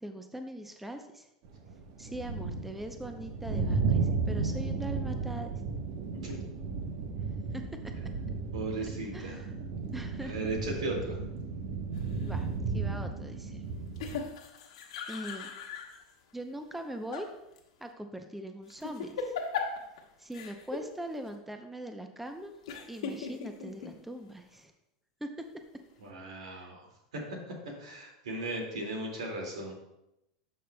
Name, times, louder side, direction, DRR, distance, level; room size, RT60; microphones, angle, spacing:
voice 1, 0.0-1.3 2.0-5.5 7.5-7.6 9.1-9.5 9.9-10.3 12.2-12.5 12.7-13.6 15.1-15.5 16.3-17.3 17.8-19.3 20.2-22.5 22.9-24.7 25.2-25.4 26.4-26.7, right 1 dB, 5° right, 6 dB, 0.6 m, -41 dB
sound 1, 1.4-14.2, right 4 dB, 60° right, 1.0 m, -34 dB
voice 2, 8.5-9.4 10.2-11.2 26.0-26.9 27.1-27.4 27.8-29.7, right 2 dB, 85° right, 1 dB, 2.1 m, -36 dB
sound 2, 12.0-12.5 14.0-16.0 16.7-17.3 17.6-17.7 18.7-20.0 20.3-20.9 21.3-21.4 22.7-23.9, left 5 dB, 80° left, 1.2 m, -38 dB
12.0 x 5.4 x 2.2 m, 0.87 s
hypercardioid pair, 105°, 3 cm